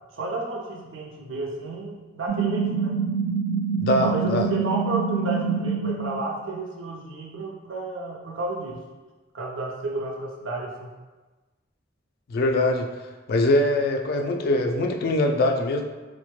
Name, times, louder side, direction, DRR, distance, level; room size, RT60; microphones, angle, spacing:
voice 1, 0.1-3.0 4.0-8.8 9.3-10.9, right 3 dB, 85° right, -1 dB, 0.6 m, -31 dB
sound 1, 2.3-6.2, right 6 dB, 20° right, 0.5 m, -26 dB
voice 2, 3.8-4.4 12.3-12.9 13.3-15.8, left 1 dB, 50° left, 4 dB, 0.3 m, -22 dB
3.5 x 2.1 x 3.1 m, 1.2 s
head